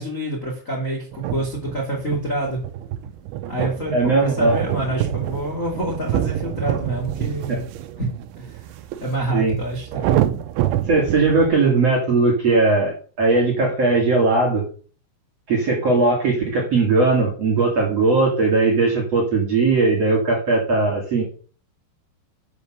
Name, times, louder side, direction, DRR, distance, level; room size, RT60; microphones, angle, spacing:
voice 1, 0.0-2.6 3.5-7.6 8.0-8.1 8.4-8.7 9.0-10.3, right 1 dB, 30° left, -1 dB, 1.6 m, -27 dB
sound 1, 1.1-11.5, right 12 dB, 80° right, 3.0 m, -27 dB
voice 2, 3.9-4.5 7.5-7.6 9.3-9.5 10.9-14.6 15.5-21.2, right 3 dB, 40° right, -2 dB, 2.7 m, -19 dB
8.1 x 6.9 x 6.2 m, 0.40 s
omnidirectional pair, 5.6 m